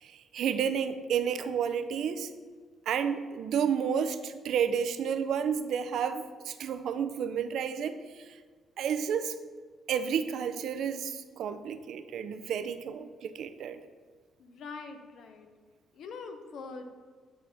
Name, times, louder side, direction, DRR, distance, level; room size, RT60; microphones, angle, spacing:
voice 1, 0.0-2.3 2.9-8.4 8.8-9.4 9.9-13.8, right 7 dB, 70° right, 10 dB, 0.4 m, -31 dB
voice 2, 14.4-15.5 15.9-16.9, left 4 dB, 70° left, 7 dB, 0.7 m, -43 dB
8.5 x 4.0 x 3.4 m, 1.5 s
cardioid pair, 90°, 0 cm